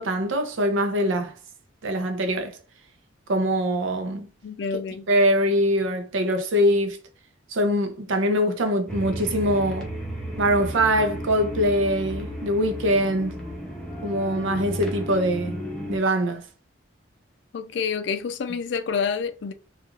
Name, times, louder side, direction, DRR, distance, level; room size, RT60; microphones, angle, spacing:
voice 1, 0.0-1.4 1.8-2.6 3.3-4.3 5.1-7.0 7.5-9.9 10.4-13.4 14.0-16.4, equal, 85° right, 0.6 m, -23 dB
voice 2, 4.4-5.1 17.5-19.5, left 6 dB, 65° left, 0.3 m, -28 dB
sound 1, 8.9-16.0, equal, 5° left, 0.5 m, -34 dB
2.4 x 2.4 x 2.9 m
head